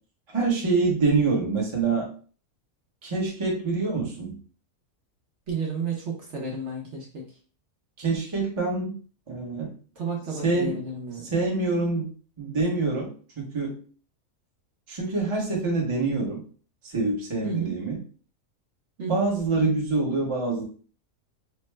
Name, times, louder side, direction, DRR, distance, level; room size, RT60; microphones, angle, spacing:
voice 1, 0.3-2.1 3.0-4.4 8.0-9.0 9.3-9.7 10.4-10.8 11.3-12.1 12.4-13.1 13.4-13.8 14.9-16.4 16.8-18.0 19.1-20.6, right 3 dB, 25° right, -2 dB, 0.7 m, -25 dB
voice 2, 5.5-7.3 10.0-11.3 17.4-17.8 19.0-19.3, right 4 dB, 60° right, -2 dB, 1.0 m, -32 dB
3.2 x 2.0 x 3.2 m, 0.41 s
omnidirectional pair, 1.5 m